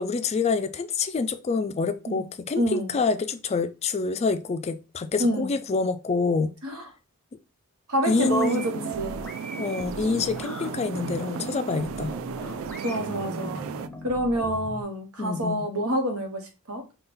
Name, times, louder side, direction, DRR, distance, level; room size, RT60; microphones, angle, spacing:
voice 1, 0.0-6.5 8.1-8.9 9.6-12.1 15.2-15.6, left 4 dB, 30° left, 0.3 m, -27 dB
voice 2, 2.6-2.9 5.2-5.5 6.6-6.9 7.9-9.3 12.4-12.6 12.8-13.6 14.0-16.4 16.7-16.8, equal, 85° right, 1.1 m, -27 dB
sound 1, 8.1-13.9, right 7 dB, 65° right, 0.3 m, -35 dB
sound 2, 8.4-14.8, equal, 5° left, 0.7 m, -40 dB
5.2 x 2.3 x 3.9 m
head